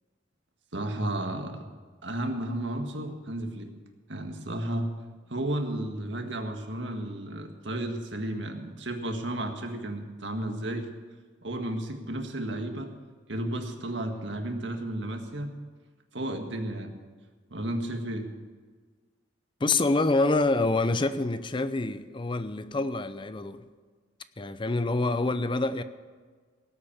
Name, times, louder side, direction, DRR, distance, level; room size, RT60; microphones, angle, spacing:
voice 1, 0.7-1.7 2.0-3.7 4.1-4.9 5.3-10.9 11.4-12.9 13.3-15.5 16.1-16.9 17.5-18.3, right 1 dB, 80° right, 1.8 m, -33 dB
voice 2, 19.6-23.6 24.4-25.8, left 2 dB, 25° left, 0.6 m, -26 dB
18.0 x 8.4 x 7.3 m
head